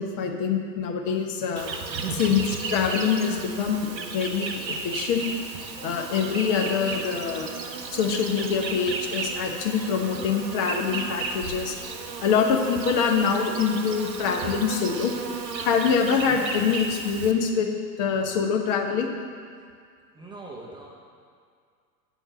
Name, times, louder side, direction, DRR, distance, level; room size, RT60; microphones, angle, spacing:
voice 1, 0.0-1.7 2.1-5.3 5.8-7.5 7.9-11.8 12.2-15.1 15.6-17.7 18.0-19.1, left 6 dB, 35° left, 2 dB, 1.1 m, -25 dB
Insect, 1.6-17.3, right 4 dB, 85° right, 0.9 m, -34 dB
voice 2, 1.9-2.2 15.8-15.9 20.2-20.9, right 2 dB, 10° right, -4 dB, 0.8 m, -42 dB
8.8 x 4.6 x 6.9 m, 2.1 s
hypercardioid pair, 100°, 50 cm